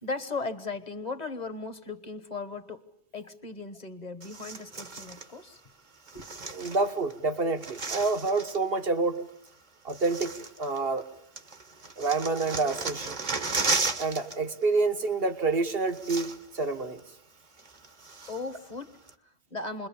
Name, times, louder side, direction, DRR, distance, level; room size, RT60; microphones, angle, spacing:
voice 1, 0.0-2.9 3.1-5.6 6.1-6.3 18.3-19.9, left 3 dB, 40° left, 10 dB, 1.4 m, -37 dB
sound 1, 4.2-5.3 6.1-7.1 7.4-8.6 9.5-9.6 9.9-11.1 11.4-14.4 14.6-14.8 15.6-15.7 15.9-16.6 17.0-17.1 17.6-18.6 19.1-19.2, right 3 dB, 45° right, 1.3 m, -34 dB
voice 2, 6.5-9.2 9.8-10.3 10.6-11.0 12.0-13.2 14.0-17.0, right 3 dB, 65° right, 7 dB, 1.7 m, -28 dB
28.0 x 22.0 x 7.1 m, 0.72 s
omnidirectional pair, 1.1 m